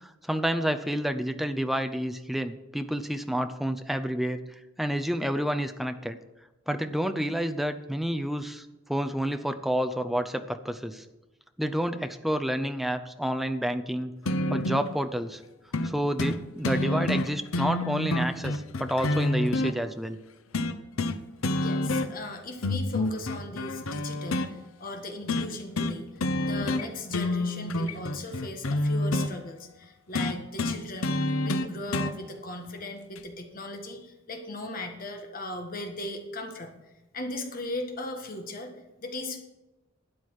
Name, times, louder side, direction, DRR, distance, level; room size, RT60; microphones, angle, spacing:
voice 1, 0.0-4.4 4.8-6.2 6.7-11.0 11.6-14.1 14.5-15.4 15.8-20.2, equal, ahead, 7 dB, 0.6 m, -29 dB
sound 1, 14.3-14.9 15.7-15.9 16.2-16.4 16.6-19.7 20.5-21.2 21.4-22.3 22.6-24.5 25.3-25.5 25.8-26.0 26.2-26.9 27.1-29.3 30.1-32.1 33.2-33.3, left 2 dB, 85° left, 0.8 m, -28 dB
voice 2, 21.6-31.1 31.4-39.4, left 2 dB, 45° left, 4 dB, 1.7 m, -38 dB
12.5 x 9.1 x 4.8 m, 1.0 s
head